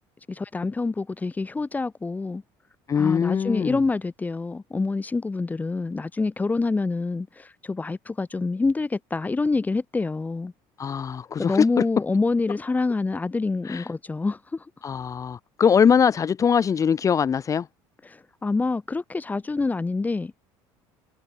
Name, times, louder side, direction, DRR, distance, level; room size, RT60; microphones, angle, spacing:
voice 1, 0.3-2.4 2.9-10.5 11.4-14.7 18.0-20.3, left 3 dB, 15° left, 6.4 m, -26 dB
voice 2, 2.9-3.8 10.8-11.6 13.7-13.8 14.8-17.7, left 7 dB, 30° left, 3.8 m, -22 dB
cardioid pair, 120°, 10 cm